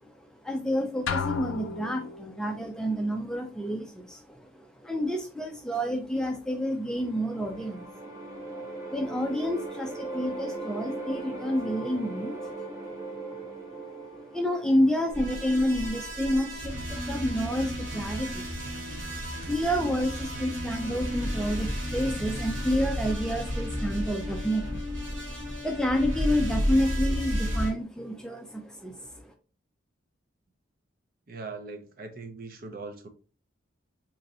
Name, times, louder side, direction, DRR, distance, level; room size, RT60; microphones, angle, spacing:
voice 1, 0.0-12.5 12.8-13.8 14.1-25.0 25.3-29.3, equal, 5° left, 0.3 m, -30 dB
sound 1, 1.1-2.5, left 5 dB, 80° left, 0.4 m, -33 dB
sound 2, 6.5-15.7, right 2 dB, 15° right, 1.1 m, -39 dB
sound 3, 15.1-27.7, equal, 85° right, 1.5 m, -32 dB
voice 2, 31.3-33.1, right 3 dB, 45° right, 0.6 m, -40 dB
3.9 x 3.0 x 2.6 m
head